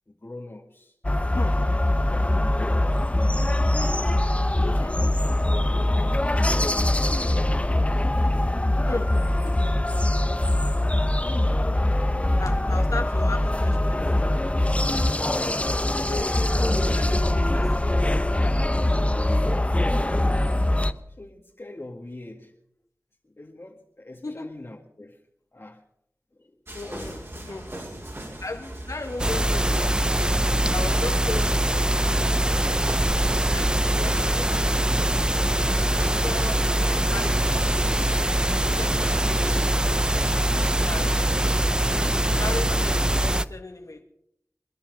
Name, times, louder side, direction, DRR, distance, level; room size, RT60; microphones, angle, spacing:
voice 1, 0.1-0.9 1.3-1.8 2.5-4.2 4.5-5.2 5.7-8.9 14.8-16.0 17.1-17.2 18.8-19.6 21.1-22.5 23.2-25.2 25.5-25.8 26.3-27.4, left 2 dB, 45° left, -1 dB, 2.0 m, -43 dB
sound 1, 1.0-20.9, left 1 dB, 25° left, 0.8 m, -23 dB
voice 2, 4.6-5.0 8.9-9.1 12.4-14.2 15.9-16.5 16.8-17.8 24.2-24.5 26.7-27.2 27.5-27.7 28.4-30.0 30.7-32.3 33.5-34.5 35.6-37.6 38.7-39.5 40.7-41.2 42.3-44.0, left 3 dB, 75° left, 4 dB, 1.8 m, -36 dB
sound 2, 26.7-43.3, right 1 dB, 50° right, 5.2 m, -38 dB
sound 3, 29.2-43.4, right 1 dB, 15° right, 0.6 m, -23 dB
26.0 x 10.5 x 5.3 m, 0.74 s
wide cardioid pair, 40°, 6 cm